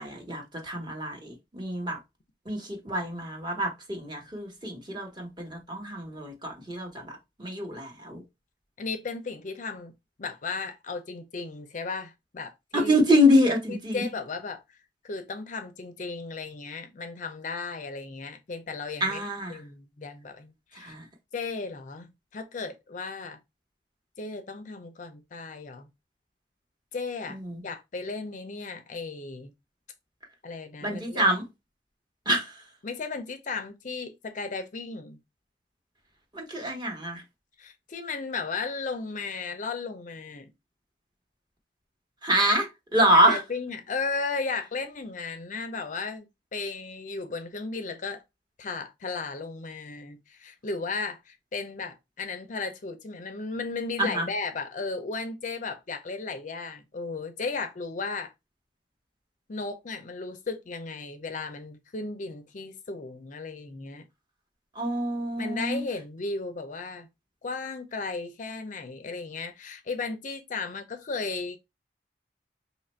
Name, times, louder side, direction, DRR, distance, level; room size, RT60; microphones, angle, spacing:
voice 1, 0.0-2.0 2.5-7.1 7.4-8.2 12.7-14.0 19.0-19.6 20.8-21.0 27.3-27.6 30.8-31.4 32.3-32.5 36.3-37.2 42.2-43.4 54.0-54.3 64.8-65.8, equal, 25° right, 1.1 m, -26 dB
voice 2, 8.8-9.9 10.2-12.9 13.7-14.8 15.0-19.2 19.5-20.9 21.3-23.4 24.2-25.9 26.9-27.4 27.6-29.5 30.4-31.3 32.8-35.2 37.6-40.5 43.1-46.2 46.5-48.2 48.6-58.3 59.5-64.0 65.4-67.1 67.4-71.6, left 4 dB, 45° left, 0.5 m, -35 dB
3.0 x 2.5 x 4.3 m
head